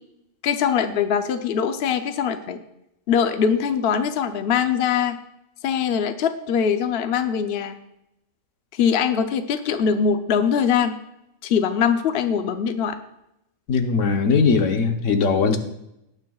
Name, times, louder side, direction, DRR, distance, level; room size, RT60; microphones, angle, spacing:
voice 1, 0.4-2.6 3.1-5.2 5.6-7.8 8.7-11.0 11.4-13.0, left 7 dB, 60° left, 8 dB, 0.8 m, -22 dB
voice 2, 13.7-15.6, left 5 dB, 75° left, 6 dB, 1.3 m, -19 dB
18.5 x 9.1 x 2.3 m, 0.83 s
omnidirectional pair, 1.3 m